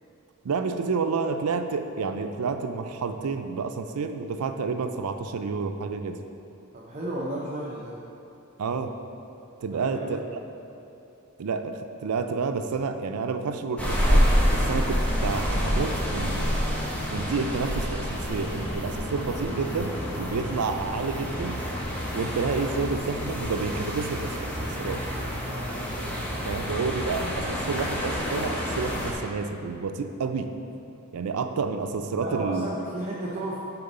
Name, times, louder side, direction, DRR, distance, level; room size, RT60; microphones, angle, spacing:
voice 1, 0.4-6.2 8.6-8.9 9.6-10.2 11.4-14.3 14.5-16.4 17.1-21.6 22.1-25.0 26.5-30.5 31.1-32.7, right 4 dB, 85° right, 7 dB, 0.5 m, -29 dB
voice 2, 6.7-8.0 9.7-10.2 25.4-25.8 32.2-33.6, right 1 dB, 30° right, -6 dB, 0.7 m, -33 dB
sound 1, 13.8-29.1, equal, 5° left, 1.0 m, -28 dB
6.8 x 4.3 x 5.4 m, 2.7 s
head